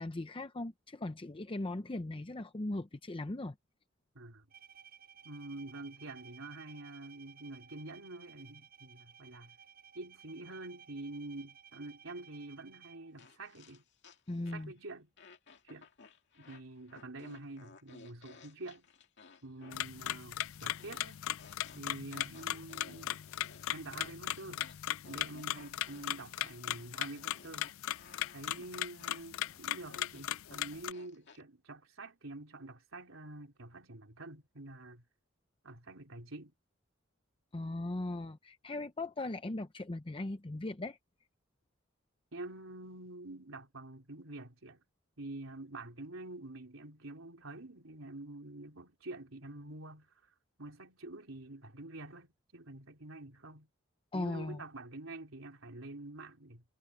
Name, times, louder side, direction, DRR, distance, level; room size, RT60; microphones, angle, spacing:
voice 1, 0.0-3.5 14.3-14.7 37.5-41.0 54.1-54.6, left 2 dB, 25° left, 0.7 m, -38 dB
voice 2, 4.1-4.5 5.2-9.6 9.9-13.8 14.5-15.1 15.6-15.9 16.4-18.9 19.4-21.2 21.7-23.2 23.7-24.7 25.1-27.7 28.3-35.0 35.6-36.5 42.3-44.8 45.2-50.1 50.6-53.7 54.1-56.6, right 2 dB, 75° right, 3.9 m, -47 dB
Bowed string instrument, 4.5-13.3, right 7 dB, 50° right, 5.9 m, -57 dB
sound 1, 13.2-14.8 15.2-31.4, left 4 dB, 60° left, 2.2 m, -58 dB
sound 2, 19.7-30.9, left 12 dB, 80° left, 0.5 m, -38 dB
head